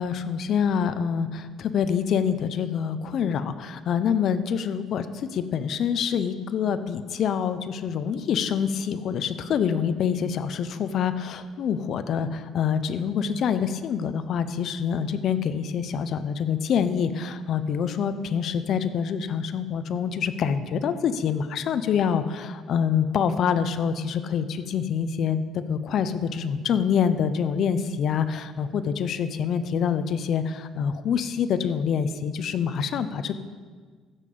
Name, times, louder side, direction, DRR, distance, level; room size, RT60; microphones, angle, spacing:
voice 1, 0.0-33.4, left 7 dB, 50° left, 11 dB, 0.6 m, -26 dB
15.0 x 6.7 x 5.3 m, 1.5 s
cardioid pair, 160°, 0 cm